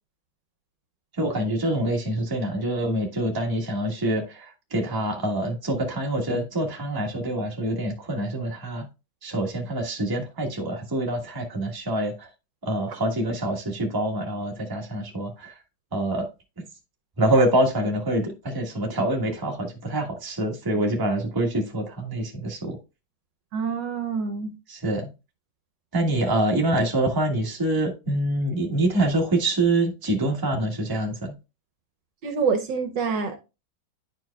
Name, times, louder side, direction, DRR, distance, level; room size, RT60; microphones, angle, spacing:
voice 1, 1.2-8.9 9.2-12.3 12.6-15.6 15.9-16.3 17.2-22.8 24.7-25.1 25.9-31.3, right 1 dB, 15° right, 1.1 m, -25 dB
voice 2, 23.5-24.5 32.2-33.4, right 5 dB, 65° right, 1.4 m, -26 dB
10.5 x 4.6 x 2.2 m
omnidirectional pair, 2.2 m